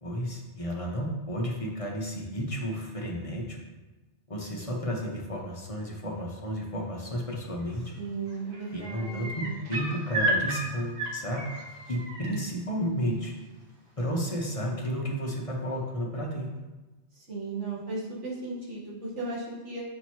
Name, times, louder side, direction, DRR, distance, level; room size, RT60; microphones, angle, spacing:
voice 1, 0.0-3.6 4.3-7.8 8.7-11.4 11.9-13.3 14.0-16.5, equal, 35° left, -2 dB, 0.8 m, -32 dB
sound 1, 7.6-8.0 8.3-12.3 14.0-14.1, right 1 dB, 55° right, 1.1 m, -33 dB
voice 2, 8.0-9.5 17.2-19.8, right 3 dB, 85° right, -4 dB, 1.7 m, -36 dB
7.2 x 2.9 x 4.4 m, 1.2 s
omnidirectional pair, 1.2 m